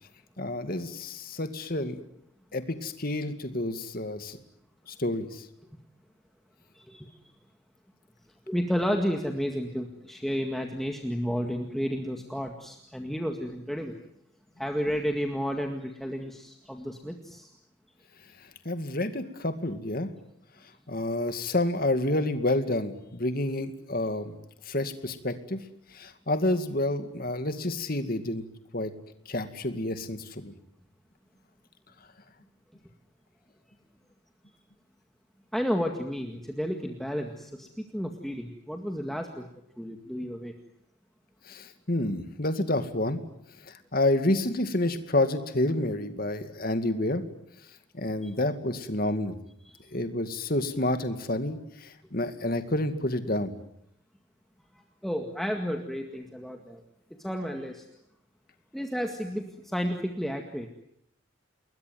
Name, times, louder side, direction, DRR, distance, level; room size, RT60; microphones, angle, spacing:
voice 1, 0.4-2.0 2.5-4.4 4.9-5.5 18.6-20.1 20.9-24.4 24.7-25.6 25.9-28.4 28.7-28.9 29.3-30.5 41.5-43.2 43.7-47.2 47.9-49.4 49.9-53.5, left 1 dB, 45° left, 9 dB, 2.3 m, -29 dB
voice 2, 6.7-7.1 8.5-13.9 14.6-17.5 35.5-39.5 39.8-40.5 48.2-48.3 49.6-49.8 54.7-56.8 57.2-57.9 58.7-60.7, equal, ahead, 3 dB, 1.9 m, -32 dB
29.5 x 21.5 x 9.4 m, 0.75 s
head